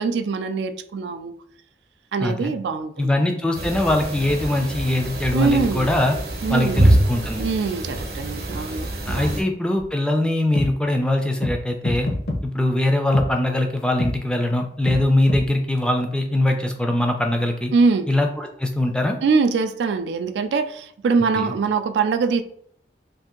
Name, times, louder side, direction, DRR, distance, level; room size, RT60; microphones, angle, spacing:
voice 1, 0.0-1.3 2.1-3.1 5.3-5.9 6.4-6.8 7.4-9.3 17.7-18.1 19.2-22.4, right 4 dB, 85° right, 9 dB, 0.3 m, -23 dB
voice 2, 2.2-2.5 3.0-6.1 6.5-7.4 9.1-12.1 12.4-17.7 18.1-19.2 21.4-21.5, left 1 dB, 5° left, 3 dB, 0.3 m, -22 dB
sound 1, 3.5-9.4, right 1 dB, 60° right, 0.8 m, -24 dB
sound 2, 9.8-9.9 10.6-10.7 11.4-11.6 11.9-12.4 13.1-13.3 14.0-14.1 14.9-15.0 15.3-15.4, left 1 dB, 65° left, 0.6 m, -25 dB
2.7 x 2.6 x 3.6 m, 0.65 s
head